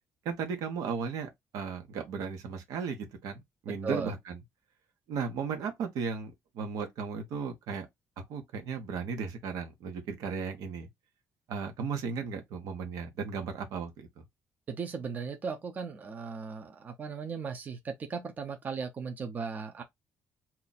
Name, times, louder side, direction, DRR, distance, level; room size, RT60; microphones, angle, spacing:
voice 1, 0.2-4.4 5.1-7.9 8.3-10.9 11.5-14.1, right 5 dB, 85° right, 1.2 m, -35 dB
voice 2, 3.7-4.1 14.7-19.8, right 5 dB, 30° right, 0.7 m, -37 dB
2.8 x 2.4 x 4.1 m
cardioid pair, 175°, 6 cm